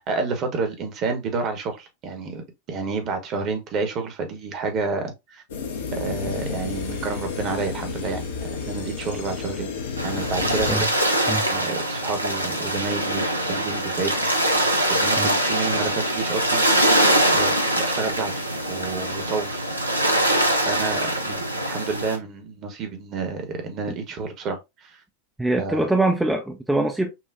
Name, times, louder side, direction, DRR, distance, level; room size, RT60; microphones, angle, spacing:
voice 1, 0.0-5.4 5.9-9.7 10.0-10.9 11.5-14.3 14.9-16.6 17.3-19.6 20.7-25.0 25.6-25.8, right 4 dB, 35° right, 1.1 m, -30 dB
sound 1, 5.5-10.7, left 4 dB, 60° left, 0.8 m, -31 dB
sound 2, 10.0-22.2, right 1 dB, 85° right, 0.7 m, -23 dB
voice 2, 25.4-27.1, right 2 dB, 5° right, 0.5 m, -23 dB
5.8 x 2.4 x 2.6 m
figure-of-eight pair, 90°, 0 cm